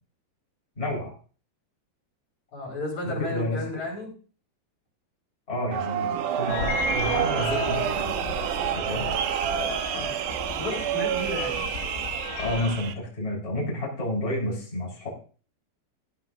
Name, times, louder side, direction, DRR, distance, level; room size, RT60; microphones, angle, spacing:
voice 1, 0.8-1.1 3.0-3.6 5.5-8.2 8.7-9.1 12.4-15.1, left 1 dB, 15° left, -4 dB, 4.3 m, -30 dB
voice 2, 2.5-4.1 9.9-10.2 10.5-11.6, left 2 dB, 40° left, -2 dB, 6.1 m, -33 dB
sound 1, 5.7-12.9, right 9 dB, 85° right, 1.9 m, -28 dB
sound 2, 6.5-12.8, left 4 dB, 90° left, 4.0 m, -34 dB
15.0 x 14.0 x 2.6 m, 0.40 s
omnidirectional pair, 5.1 m